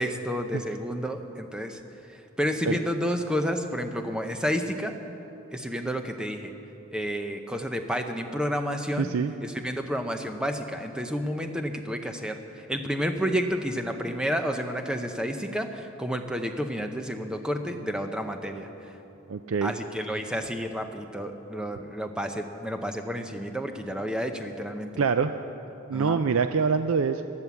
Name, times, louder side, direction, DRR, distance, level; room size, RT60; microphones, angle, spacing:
voice 1, 0.0-1.8 2.4-4.9 5.5-6.5 6.9-9.1 9.4-12.4 12.7-18.7 19.6-24.9 25.9-26.2, equal, 5° right, 5 dB, 0.7 m, -30 dB
voice 2, 9.0-9.3 19.3-19.7 25.0-25.3 25.9-27.2, right 5 dB, 75° right, 9 dB, 0.4 m, -25 dB
15.5 x 11.0 x 7.1 m, 3.0 s
head